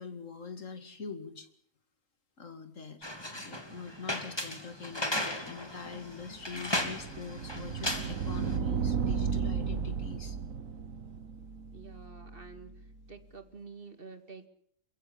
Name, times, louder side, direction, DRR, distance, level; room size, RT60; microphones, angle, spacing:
voice 1, 0.0-1.5 2.4-3.1 3.3-10.4, left 5 dB, 75° left, 10 dB, 2.6 m, -44 dB
sound 1, 3.0-8.6, left 1 dB, 20° left, 3.1 m, -36 dB
sound 2, 6.1-13.0, right 6 dB, 85° right, 1.6 m, -35 dB
voice 2, 11.7-12.8 13.1-14.5, right 5 dB, 45° right, 10 dB, 2.4 m, -48 dB
28.5 x 15.5 x 8.6 m, 0.65 s
omnidirectional pair, 1.4 m